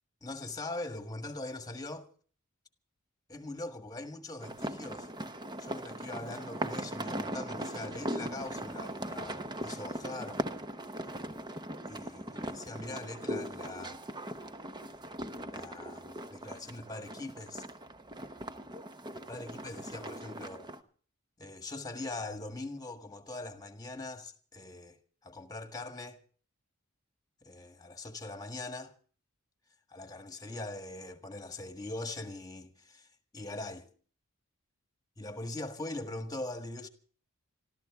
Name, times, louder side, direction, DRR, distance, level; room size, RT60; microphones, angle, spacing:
voice 1, 0.2-2.1 3.3-5.1 5.6-10.4 11.8-14.0 15.3-17.6 19.1-20.7 21.4-26.2 27.4-28.9 29.9-33.1 33.3-33.9 35.2-36.9, left 2 dB, 15° left, 1.6 m, -42 dB
sound 1, 4.4-20.8, right 1 dB, 20° right, 0.9 m, -39 dB
26.5 x 13.5 x 3.6 m
head